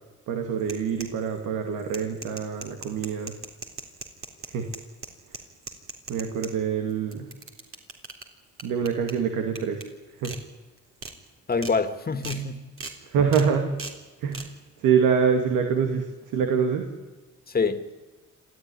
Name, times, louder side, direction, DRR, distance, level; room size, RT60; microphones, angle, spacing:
voice 1, 0.3-3.3 4.5-4.7 6.1-7.3 8.6-9.8 10.2-10.3 13.1-13.7 14.2-14.5 14.8-16.9, right 6 dB, 90° right, 2.3 m, -25 dB
sound 1, 0.6-1.4 1.8-6.5 6.9-8.2 8.6-9.1 9.5-9.8 10.2-10.4 10.8-11.1 11.5-11.7 12.2-12.4 12.8-12.9 13.3-13.5 13.8-14.0 14.3-14.5, right 3 dB, 45° right, 3.7 m, -38 dB
voice 2, 11.5-12.6 17.5-17.9, left 4 dB, 30° left, 2.1 m, -26 dB
26.5 x 15.0 x 10.0 m
cardioid pair, 90°, 30 cm